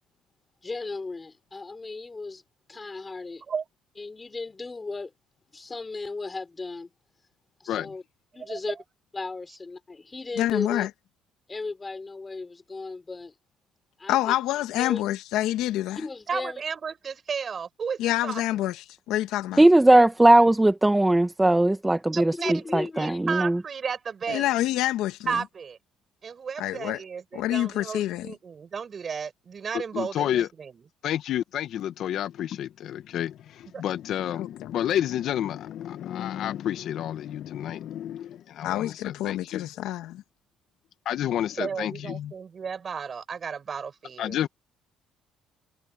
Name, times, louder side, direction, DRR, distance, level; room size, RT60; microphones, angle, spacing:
voice 1, 0.6-2.4 2.7-3.4 4.0-5.1 5.5-6.9 7.6-8.0 8.3-8.8 9.1-10.9 11.5-13.3 14.0-14.3 14.8-15.0 15.9-16.6 22.3-23.2, left 3 dB, 20° left, 5.1 m, -36 dB
voice 2, 10.4-10.9 14.1-16.0 18.0-18.7 19.1-19.6 24.3-25.4 26.6-27.0 27.3-28.3 34.4-34.7 38.6-40.2, left 14 dB, 80° left, 1.6 m, -27 dB
voice 3, 16.3-18.4 22.1-24.6 25.3-25.8 26.2-30.7 33.7-33.8 41.6-44.4, right 6 dB, 40° right, 6.9 m, -33 dB
voice 4, 19.6-23.6, right 1 dB, 10° right, 1.5 m, -19 dB
voice 5, 29.7-30.5 31.0-39.7 41.0-42.3 44.2-44.5, left 11 dB, 65° left, 1.1 m, -30 dB
cardioid pair, 100°, 0 cm